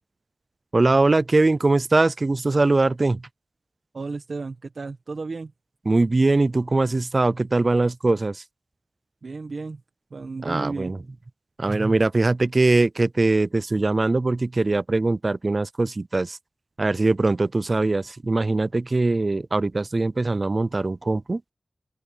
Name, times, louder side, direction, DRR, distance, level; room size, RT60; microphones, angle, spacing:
voice 1, 0.7-3.2 5.9-8.4 10.4-11.0 11.6-16.4 16.8-21.4, right 2 dB, 45° right, 0.4 m, -21 dB
voice 2, 3.9-5.5 9.2-9.8 10.1-10.9, right 3 dB, 70° right, 1.5 m, -33 dB
open air
cardioid pair, 55°, 0 cm